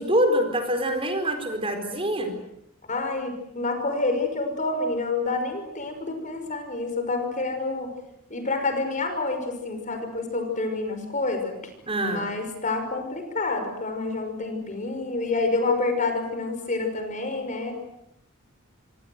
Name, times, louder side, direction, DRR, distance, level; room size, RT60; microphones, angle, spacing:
voice 1, 0.0-2.3 11.9-12.2, equal, 25° right, 6 dB, 4.2 m, -25 dB
voice 2, 2.9-7.9 8.3-11.6 12.1-17.7, left 3 dB, 35° left, 6 dB, 5.6 m, -28 dB
26.5 x 25.5 x 7.9 m, 0.80 s
head